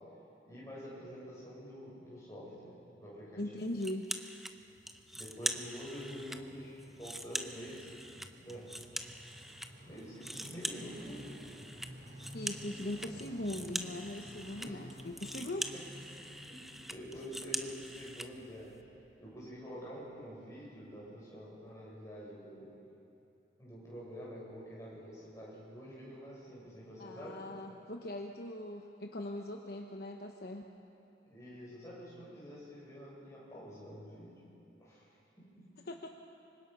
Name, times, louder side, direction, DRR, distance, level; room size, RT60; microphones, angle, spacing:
voice 1, 0.4-3.4 5.1-8.0 8.4-8.7 9.8-11.3 14.6-14.9 15.7-15.8 16.1-18.7 19.2-22.7 23.6-27.4 31.3-34.4 34.8-35.1 35.4-35.7, equal, 15° left, -6 dB, 7.3 m, -47 dB
voice 2, 3.4-4.1 12.3-15.7 27.0-30.6 35.8-36.1, left 1 dB, 55° left, 2 dB, 1.1 m, -40 dB
sound 1, 3.8-4.5 4.9-6.4 6.8-9.7 10.0-18.3, equal, ahead, 0.7 m, -42 dB
sound 2, 4.5-19.8 20.0-20.1, equal, 60° right, 4.4 m, -54 dB
25.0 x 25.0 x 5.6 m, 2.8 s
head